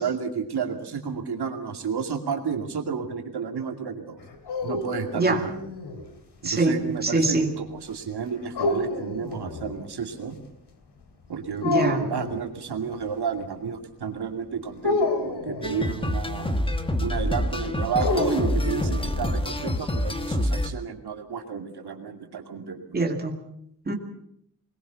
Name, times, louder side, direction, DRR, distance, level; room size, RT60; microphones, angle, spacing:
voice 1, 0.0-4.2 4.6-5.5 6.4-10.4 11.3-16.6 17.0-22.9, right 6 dB, 75° right, 4 dB, 2.5 m, -31 dB
sound 1, 4.2-6.1 8.5-9.8 11.6-12.4 14.8-15.9 17.9-19.1, left 2 dB, 80° left, 3.2 m, -28 dB
voice 2, 6.4-7.5 11.6-12.0 22.9-23.4 23.9-24.0, right 2 dB, 25° right, 2 dB, 2.1 m, -24 dB
Last Dance, 15.6-20.7, left 1 dB, 15° left, 1.3 m, -26 dB
21.5 x 21.0 x 7.0 m, 0.72 s
wide cardioid pair, 170°, 39 cm